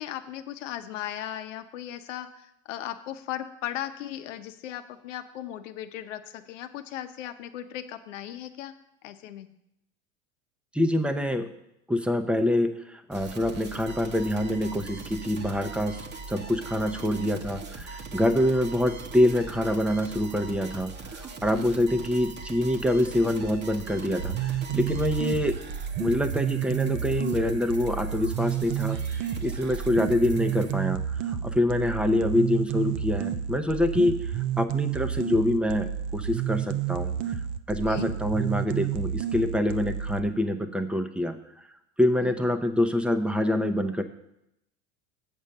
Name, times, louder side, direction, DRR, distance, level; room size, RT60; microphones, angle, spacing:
voice 1, 0.0-8.7 9.0-9.5 21.5-21.8 25.3-25.4 37.8-38.1 42.2-42.7, left 11 dB, 80° left, 9 dB, 0.9 m, -37 dB
voice 2, 10.7-11.5 11.9-25.6 26.0-31.0 31.3-37.1 37.7-41.4 42.0-44.0, left 1 dB, 5° right, 7 dB, 0.7 m, -26 dB
sound 1, 13.1-30.7, right 4 dB, 30° right, 1.1 m, -41 dB
sound 2, 24.2-40.2, right 9 dB, 55° right, 0.7 m, -30 dB
7.3 x 7.1 x 6.5 m, 0.82 s
supercardioid pair, 105°, 37 cm